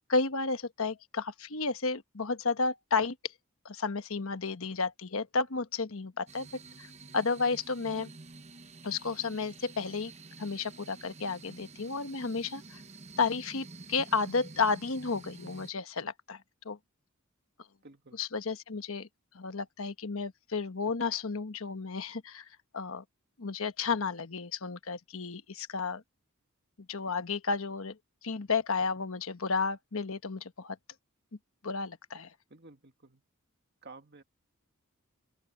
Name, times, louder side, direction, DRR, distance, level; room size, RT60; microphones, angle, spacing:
voice 1, 0.1-3.2 3.6-6.5 6.8-6.9 7.1-8.1 8.8-10.1 10.4-12.8 13.2-16.4 16.6-16.8 18.2-19.1 19.3-22.5 22.7-23.0 23.4-26.0 26.9-28.0 28.2-30.8 31.6-32.3, left 4 dB, 65° left, 1.2 m, -32 dB
sound 1, 6.3-15.7, right 3 dB, 30° right, 0.9 m, -49 dB
voice 2, 17.8-18.2 32.5-33.2 33.8-34.2, right 3 dB, 50° right, 2.0 m, -52 dB
open air
head